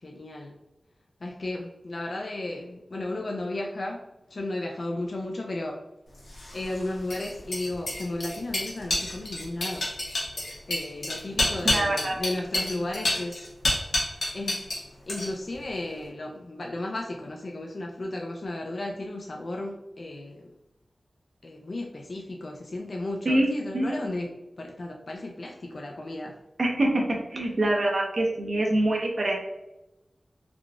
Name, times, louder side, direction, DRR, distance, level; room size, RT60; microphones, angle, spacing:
voice 1, 0.0-0.6 1.2-4.0 4.3-5.8 6.5-9.9 10.7-13.5 14.3-14.6 15.1-20.5 21.4-26.4, left 2 dB, 65° left, 0 dB, 0.3 m, -34 dB
sound 1, 6.3-14.8 15.1-15.6, left 1 dB, 85° left, 0.9 m, -29 dB
voice 2, 11.6-12.2 23.3-23.9 26.6-27.0 27.3-29.3, right 1 dB, 65° right, -1 dB, 0.5 m, -25 dB
3.5 x 2.4 x 2.3 m, 0.93 s
cardioid pair, 50°, 0 cm